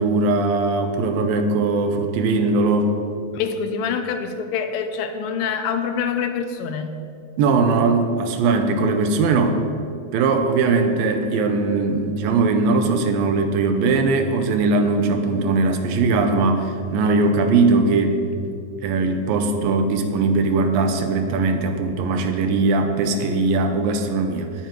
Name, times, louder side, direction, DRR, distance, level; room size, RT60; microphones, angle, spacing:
voice 1, 0.0-2.9 7.4-9.6 10.1-18.2 18.8-24.5, right 3 dB, 80° right, 6 dB, 2.6 m, -20 dB
voice 2, 3.3-6.9, left 6 dB, 85° left, 7 dB, 2.4 m, -25 dB
19.0 x 9.2 x 3.2 m, 2.5 s
omnidirectional pair, 4.1 m